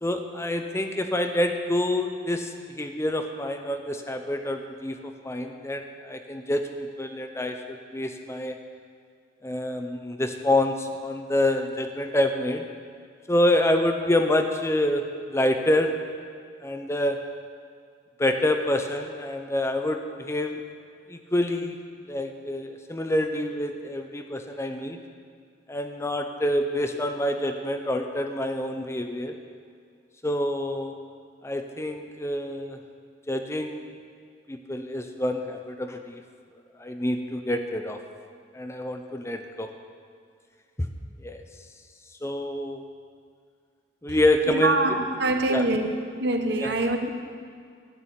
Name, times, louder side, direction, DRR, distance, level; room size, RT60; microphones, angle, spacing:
voice 1, 0.0-8.6 9.4-12.7 13.3-15.0 15.3-15.9 16.6-17.2 18.2-20.6 21.1-21.8 22.1-25.0 25.7-29.3 30.2-30.9 31.4-32.8 33.3-33.9 34.5-36.2 36.8-38.0 38.5-39.7 41.2-41.4 42.2-42.8 44.0-44.8 45.5-45.6 46.6-46.7, left 1 dB, 15° left, 5 dB, 0.6 m, -27 dB
voice 2, 44.5-45.9 46.1-47.1, right 2 dB, 65° right, 5 dB, 1.0 m, -24 dB
11.0 x 6.2 x 9.2 m, 2.2 s
head